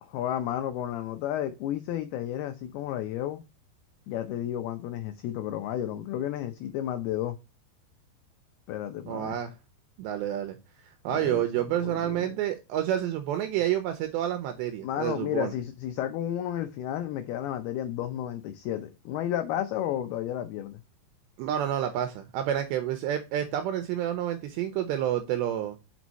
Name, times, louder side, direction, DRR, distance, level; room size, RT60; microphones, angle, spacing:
voice 1, 0.0-3.4 4.1-7.4 8.7-9.4 11.1-11.4 11.7-12.3 14.8-20.8, left 11 dB, 80° left, 2.3 m, -32 dB
voice 2, 9.1-9.5 10.0-10.6 11.0-15.5 21.4-25.8, right 11 dB, 80° right, 2.8 m, -29 dB
6.2 x 5.3 x 4.0 m
omnidirectional pair, 5.3 m